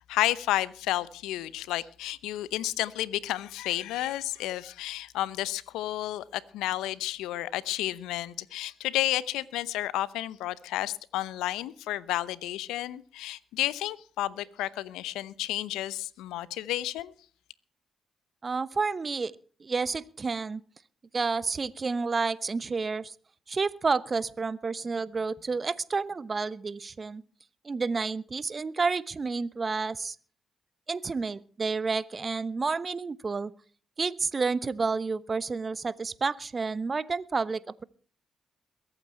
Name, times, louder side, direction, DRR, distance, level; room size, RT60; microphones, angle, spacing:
voice 1, 0.1-17.1, left 15 dB, 80° left, 0.7 m, -31 dB
voice 2, 18.4-19.3 19.6-20.6 21.1-23.1 23.5-27.2 27.6-30.2 30.9-33.5 34.0-37.8, right 4 dB, 40° right, 0.9 m, -30 dB
22.0 x 9.0 x 4.3 m
hypercardioid pair, 45°, 0 cm